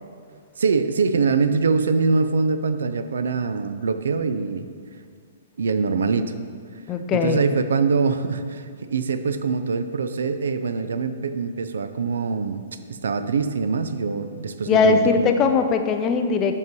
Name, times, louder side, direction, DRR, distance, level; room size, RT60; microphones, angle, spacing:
voice 1, 0.6-4.7 5.6-6.3 7.1-12.6 12.9-15.3, right 4 dB, 90° right, 10 dB, 0.4 m, -23 dB
voice 2, 6.9-7.4 14.7-16.5, left 5 dB, 20° left, 6 dB, 0.4 m, -20 dB
5.4 x 4.7 x 5.3 m, 2.1 s
hypercardioid pair, 160°, 0 cm